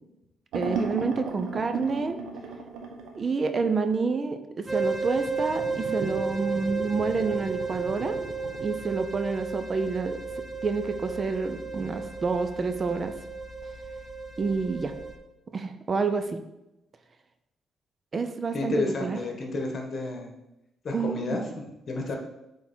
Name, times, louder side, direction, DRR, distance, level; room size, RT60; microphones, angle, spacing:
voice 1, 0.5-2.2 3.2-8.2 8.6-10.2 10.6-13.1 14.4-14.9 15.5-16.4 18.1-19.2 20.9-21.4, right 4 dB, 40° right, 8 dB, 0.6 m, -28 dB
sound 1, 0.5-3.2 5.5-8.7, right 4 dB, 80° right, 1.2 m, -36 dB
sound 2, 4.7-15.1, right 4 dB, 20° right, 1.2 m, -33 dB
voice 2, 18.5-20.3 20.8-22.2, left 2 dB, 45° left, 2 dB, 1.6 m, -31 dB
8.3 x 3.7 x 4.5 m, 0.92 s
cardioid pair, 90°, 0 cm